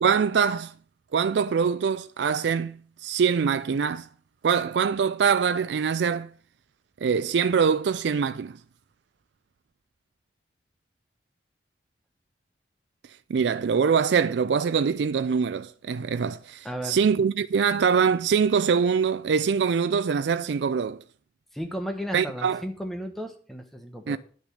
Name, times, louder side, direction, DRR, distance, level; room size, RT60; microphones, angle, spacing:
voice 1, 0.0-0.7 1.1-4.1 4.4-6.3 7.0-8.6 13.3-21.0 22.1-22.6 24.1-24.2, right 6 dB, 85° right, 0.4 m, -24 dB
voice 2, 16.6-17.0 21.5-24.2, equal, ahead, 1.2 m, -34 dB
10.0 x 6.2 x 6.4 m
head